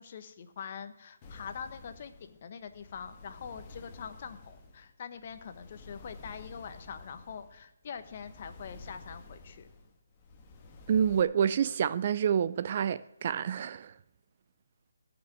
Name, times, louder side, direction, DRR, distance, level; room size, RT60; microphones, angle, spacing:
voice 1, 0.0-9.7, left 7 dB, 40° left, 1.3 m, -44 dB
sound 1, 1.2-11.2, left 3 dB, 25° left, 1.5 m, -51 dB
voice 2, 10.9-13.9, right 8 dB, 40° right, 0.4 m, -28 dB
15.5 x 6.2 x 9.2 m
hypercardioid pair, 160°, 0 cm